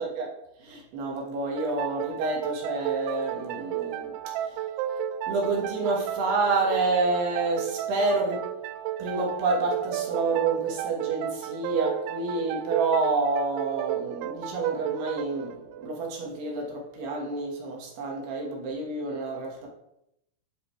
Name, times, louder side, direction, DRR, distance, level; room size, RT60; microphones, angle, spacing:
voice 1, 0.0-4.6 5.3-8.6 9.0-19.7, right 3 dB, 65° right, 3.3 m, -29 dB
sound 1, 1.6-16.9, right 11 dB, 85° right, 2.8 m, -33 dB
9.8 x 8.1 x 3.3 m
omnidirectional pair, 5.6 m